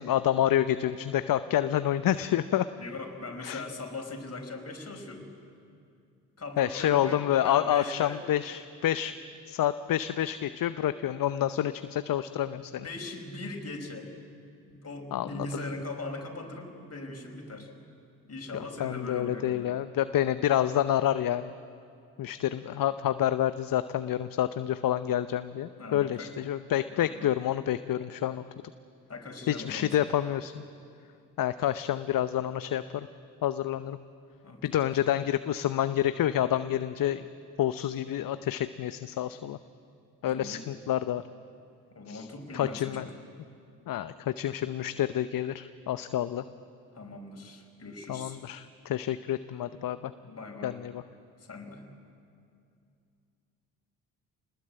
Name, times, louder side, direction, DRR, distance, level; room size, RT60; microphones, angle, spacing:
voice 1, 0.0-2.7 3.4-3.6 6.6-9.1 9.5-12.8 15.1-15.5 18.5-21.5 22.2-28.4 29.5-30.6 31.4-33.1 33.4-34.0 34.6-37.2 37.6-39.6 40.2-41.2 42.1-42.3 42.5-43.0 43.9-46.4 48.1-50.1 50.6-51.0, left 11 dB, 50° left, 13 dB, 0.8 m, -28 dB
voice 2, 2.8-5.3 6.4-8.2 12.5-14.1 14.7-17.7 18.2-19.7 25.8-26.4 26.9-27.4 29.1-30.0 34.4-34.9 40.2-40.7 41.9-43.1 46.9-48.4 50.2-50.8 51.4-51.8, left 2 dB, 35° left, 3 dB, 5.0 m, -40 dB
26.5 x 20.0 x 8.8 m, 2.5 s
hypercardioid pair, 40°, 44 cm